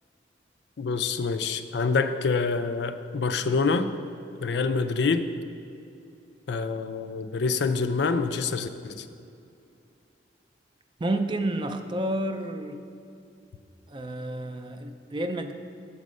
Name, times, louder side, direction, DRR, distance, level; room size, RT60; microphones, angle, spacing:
voice 1, 0.8-3.9 4.4-5.3 6.5-9.0, left 4 dB, 70° left, 9 dB, 0.4 m, -26 dB
voice 2, 11.0-12.8 13.9-15.5, right 1 dB, 25° right, 7 dB, 0.4 m, -30 dB
7.4 x 5.3 x 6.2 m, 2.6 s
head